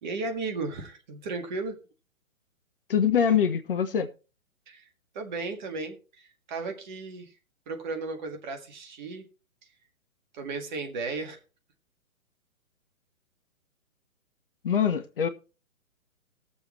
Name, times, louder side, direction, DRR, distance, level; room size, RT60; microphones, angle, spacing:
voice 1, 0.0-1.8 4.7-4.8 5.1-7.3 7.7-9.2 10.3-11.4, right 3 dB, 35° right, 1.9 m, -35 dB
voice 2, 2.9-4.1 14.6-15.3, left 8 dB, 40° left, 0.8 m, -24 dB
18.0 x 7.1 x 3.1 m
figure-of-eight pair, 125°, 41 cm